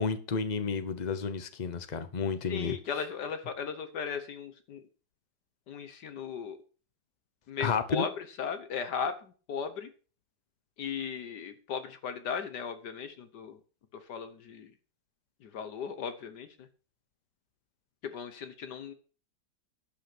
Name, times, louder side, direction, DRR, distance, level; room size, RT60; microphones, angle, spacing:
voice 1, 0.0-2.8 7.6-8.1, left 5 dB, 50° left, 11 dB, 0.5 m, -31 dB
voice 2, 2.5-4.8 5.7-6.6 7.5-9.9 10.8-13.6 13.9-14.7 15.4-16.7 18.0-18.9, left 6 dB, 65° left, 10 dB, 1.4 m, -37 dB
11.5 x 5.8 x 6.0 m, 0.39 s
omnidirectional pair, 2.0 m